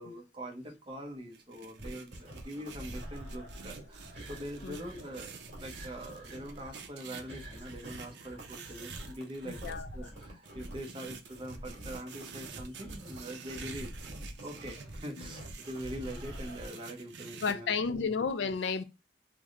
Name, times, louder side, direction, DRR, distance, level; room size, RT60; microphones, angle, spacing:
voice 1, 0.0-13.9 14.4-18.1, equal, 30° right, 0.7 m, -43 dB
sound 1, 1.3-9.7 10.5-17.5, right 6 dB, 75° right, 0.5 m, -49 dB
sound 2, 1.8-16.7, right 1 dB, 45° right, 1.7 m, -46 dB
voice 2, 9.4-9.9 15.2-15.3 17.4-18.8, left 5 dB, 75° left, 0.4 m, -32 dB
3.4 x 2.1 x 3.5 m
head